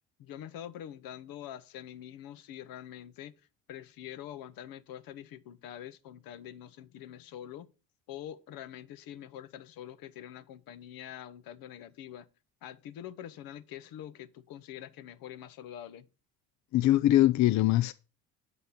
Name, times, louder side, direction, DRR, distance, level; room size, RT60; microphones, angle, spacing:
voice 1, 0.2-3.4 3.7-7.7 8.1-12.3 12.6-16.1, left 11 dB, 70° left, 1.0 m, -45 dB
voice 2, 16.7-17.9, left 14 dB, 50° left, 0.6 m, -22 dB
8.0 x 5.4 x 5.7 m
supercardioid pair, 65°, 36 cm